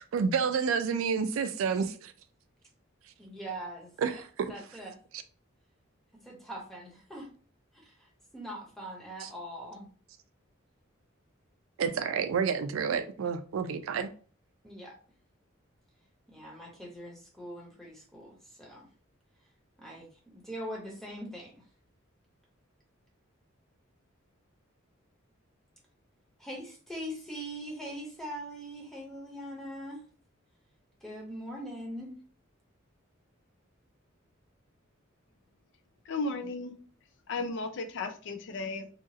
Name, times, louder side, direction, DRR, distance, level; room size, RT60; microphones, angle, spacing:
voice 1, 0.0-2.1 4.0-4.5 9.2-9.3 11.8-14.1, right 6 dB, 80° right, 0.4 m, -29 dB
voice 2, 3.2-3.9 4.5-5.0 6.2-7.3 7.8-9.9 14.6-14.9 16.3-18.8 19.8-20.1 20.3-21.6 26.4-30.0 31.0-32.2, right 1 dB, ahead, 0.8 m, -42 dB
voice 3, 36.1-36.7 37.3-38.9, left 3 dB, 60° left, 0.4 m, -34 dB
2.8 x 2.4 x 2.7 m
head